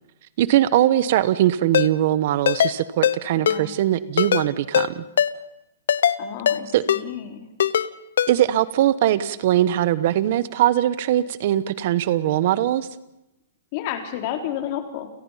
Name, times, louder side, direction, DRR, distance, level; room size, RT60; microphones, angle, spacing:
voice 1, 0.4-5.0 6.7-6.8 8.3-12.9, right 12 dB, 50° right, 16 dB, 1.1 m, -21 dB
Ringtone, 1.7-1.9 2.5-2.7 3.0-3.2 3.5-3.6 4.2-4.4 4.7-4.9 5.2-5.3 5.9-6.2 6.5-6.6 6.9-7.0 7.6-7.9 8.2-8.3, left 9 dB, 75° left, 1.1 m, -19 dB
voice 2, 3.3-3.7 6.2-7.5 13.7-15.1, left 10 dB, 40° left, 5 dB, 3.8 m, -31 dB
30.0 x 18.0 x 5.8 m, 0.90 s
hypercardioid pair, 150°, 0 cm